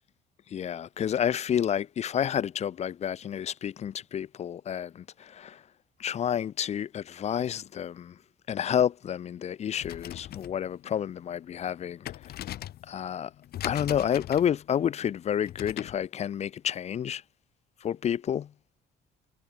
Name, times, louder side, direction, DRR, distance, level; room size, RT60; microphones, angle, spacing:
voice 1, 0.5-5.6 6.0-8.1 8.5-12.1 12.9-13.3 13.6-17.2 17.8-18.5, left 9 dB, 40° left, 0.6 m, -30 dB
sound 1, 9.7-16.1, left 13 dB, 65° left, 7.3 m, -41 dB
cardioid pair, 110°, 17 cm